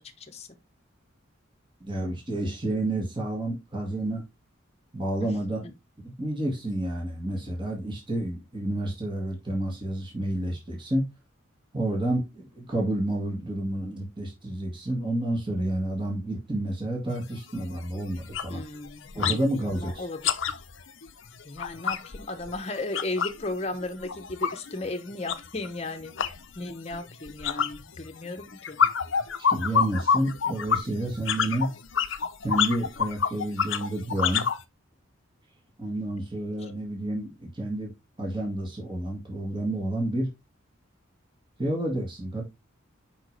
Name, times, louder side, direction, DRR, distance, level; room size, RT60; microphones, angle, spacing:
voice 1, 0.2-0.5 5.2-5.3 5.6-5.7 18.5-20.3 21.4-28.8, left 2 dB, 30° left, 0.9 m, -35 dB
voice 2, 1.8-4.2 4.9-5.6 6.0-11.1 11.7-18.6 19.2-20.0 29.5-31.7 32.4-34.5 35.8-37.9 38.2-40.3 41.6-42.4, right 1 dB, 25° right, 1.8 m, -30 dB
sound 1, 17.1-17.2 17.6-17.8 18.1-19.4 19.7-23.4 23.7-34.6, left 7 dB, 65° left, 0.7 m, -28 dB
6.2 x 5.4 x 3.3 m
head